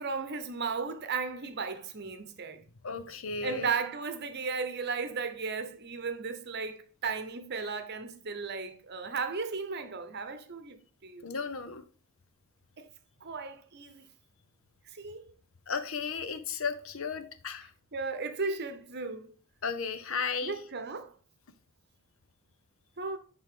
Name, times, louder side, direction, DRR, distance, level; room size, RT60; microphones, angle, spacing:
voice 1, 0.0-2.6 3.4-11.3 12.8-12.9 13.2-14.1 14.9-15.2 17.9-19.3 20.4-21.1 23.0-23.2, right 4 dB, 50° right, 0.9 m, -35 dB
voice 2, 2.8-3.7 7.6-7.7 11.2-11.8 15.7-17.7 19.6-20.6, left 5 dB, 65° left, 0.8 m, -34 dB
11.0 x 3.6 x 3.8 m
head